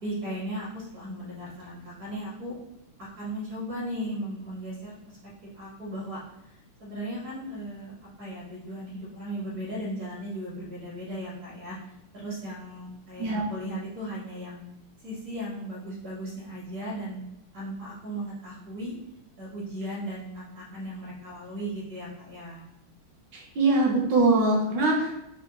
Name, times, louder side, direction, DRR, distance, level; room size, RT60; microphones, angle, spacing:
voice 1, 0.0-2.5 3.0-5.2 5.5-6.2 6.8-11.7 12.1-14.6 15.0-17.2 17.5-18.9 19.4-22.6, right 1 dB, 45° right, -6 dB, 1.9 m, -36 dB
voice 2, 23.3-25.2, right 2 dB, 65° right, -2 dB, 1.4 m, -23 dB
4.6 x 2.5 x 3.5 m, 0.85 s
omnidirectional pair, 2.3 m